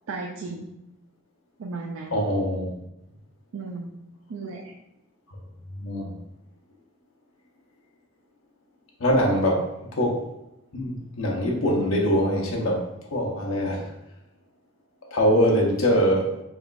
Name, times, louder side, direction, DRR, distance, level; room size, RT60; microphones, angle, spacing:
voice 1, 0.1-0.8 1.6-2.2 3.5-4.0 4.3-4.7, right 3 dB, 75° right, 1 dB, 0.4 m, -35 dB
voice 2, 2.1-2.7 5.8-6.1 9.0-9.6 9.9-10.2 10.7-12.8 13.1-13.8 15.1-16.3, equal, 75° left, -1 dB, 0.8 m, -23 dB
4.8 x 3.0 x 2.5 m, 0.87 s
head